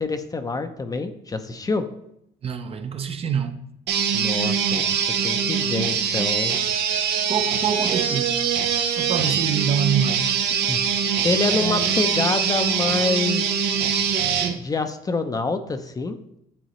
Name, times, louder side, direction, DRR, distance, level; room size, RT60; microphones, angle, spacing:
voice 1, 0.0-1.9 4.1-6.6 8.8-9.0 10.7-10.8 11.2-13.8 14.6-16.2, left 3 dB, 20° left, 0.5 m, -26 dB
voice 2, 2.4-3.6 7.3-8.4 9.0-10.3, right 7 dB, 35° right, 0.5 m, -25 dB
sound 1, 3.9-14.5, right 7 dB, 80° right, 0.7 m, -23 dB
8.8 x 4.0 x 3.0 m
cardioid pair, 110°, 17 cm